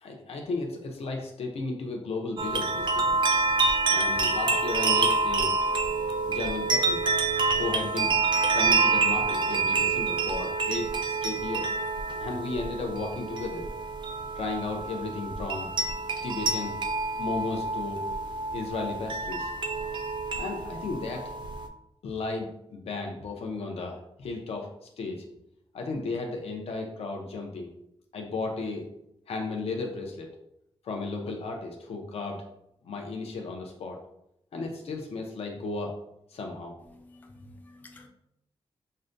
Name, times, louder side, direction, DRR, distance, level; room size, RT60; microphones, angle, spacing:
voice 1, 0.0-3.2 3.9-5.5 6.3-7.0 7.6-8.1 8.5-11.7 12.2-13.7 14.3-15.7 16.2-16.8 17.2-18.1 18.5-19.5 20.4-21.2 22.0-25.2 25.7-27.7 28.1-28.9 29.3-30.3 30.8-32.4 32.8-34.0 34.5-36.0 36.3-36.8, left 3 dB, 80° left, 1 dB, 0.6 m, -34 dB
sound 1, 2.4-21.7, right 3 dB, 50° right, 0.4 m, -27 dB
voice 2, 36.9-38.1, left 2 dB, 15° left, 2 dB, 0.4 m, -51 dB
6.3 x 2.1 x 2.5 m, 0.78 s
wide cardioid pair, 180°, 10 cm